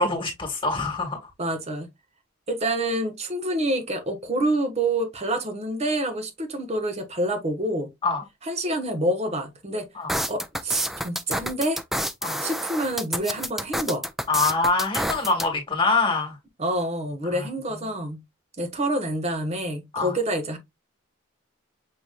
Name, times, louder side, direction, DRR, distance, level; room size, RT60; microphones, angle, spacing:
voice 1, 0.0-1.3 8.0-8.2 10.0-10.1 12.2-12.4 14.3-16.4 17.3-17.5 19.9-20.1, left 3 dB, 25° left, 1.7 m, -24 dB
voice 2, 1.4-1.9 2.5-7.9 8.4-9.9 10.3-11.8 12.4-14.1 16.6-18.2 18.6-20.6, right 1 dB, 35° right, 1.0 m, -27 dB
sound 1, 10.1-15.5, equal, ahead, 0.4 m, -28 dB
6.5 x 2.9 x 2.3 m
head